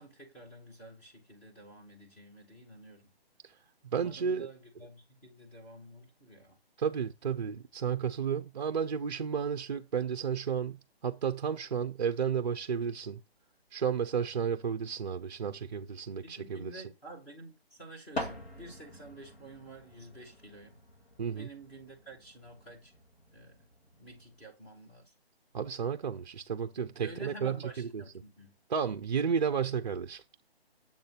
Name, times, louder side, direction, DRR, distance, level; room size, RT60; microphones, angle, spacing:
voice 1, 0.0-3.1 3.9-6.6 16.2-20.8 21.2-22.9 23.3-23.7 24.0-25.1 27.0-28.5, right 1 dB, 10° left, 0.7 m, -50 dB
voice 2, 3.9-4.5 6.8-10.8 11.0-13.2 13.7-16.8 21.2-21.5 25.5-27.6 27.9-28.0 28.7-30.2, right 7 dB, 45° right, 0.4 m, -32 dB
sound 1, 9.9-10.0 10.4-10.5 11.5-11.6 11.8-11.9 12.6-12.7 12.9-13.0 13.2-13.3 14.5-15.2 18.1-24.4, left 1 dB, 90° left, 2.2 m, -46 dB
7.2 x 2.6 x 5.6 m
figure-of-eight pair, 150°, 31 cm